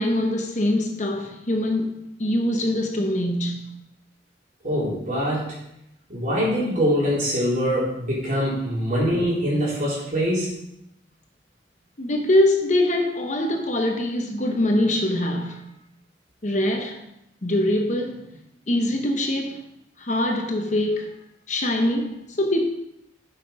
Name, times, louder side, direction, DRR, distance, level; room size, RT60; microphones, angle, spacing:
voice 1, 0.0-3.7 12.0-15.6 16.4-17.0 17.4-18.4 18.7-19.6 20.0-21.1 21.5-22.7, left 1 dB, 40° left, 1.0 m, -23 dB
voice 2, 4.6-5.6 6.1-10.5, equal, 45° right, 3.6 m, -23 dB
8.2 x 5.8 x 5.3 m
head